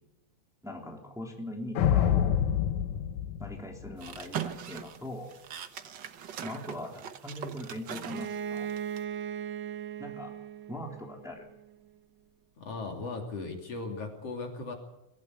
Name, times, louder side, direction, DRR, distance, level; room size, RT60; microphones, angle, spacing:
voice 1, 0.6-2.4 3.4-5.4 6.4-8.7 10.0-10.3 10.7-11.5, left 1 dB, ahead, 1 dB, 3.3 m, -41 dB
sound 1, 1.8-4.2, left 9 dB, 90° left, 2.6 m, -27 dB
sound 2, 4.0-9.0, right 9 dB, 55° right, 1.2 m, -40 dB
Bowed string instrument, 8.1-11.7, right 8 dB, 75° right, 1.0 m, -38 dB
voice 2, 12.6-14.7, left 3 dB, 55° left, 3 dB, 3.9 m, -37 dB
22.5 x 15.0 x 8.2 m, 0.88 s
omnidirectional pair, 3.3 m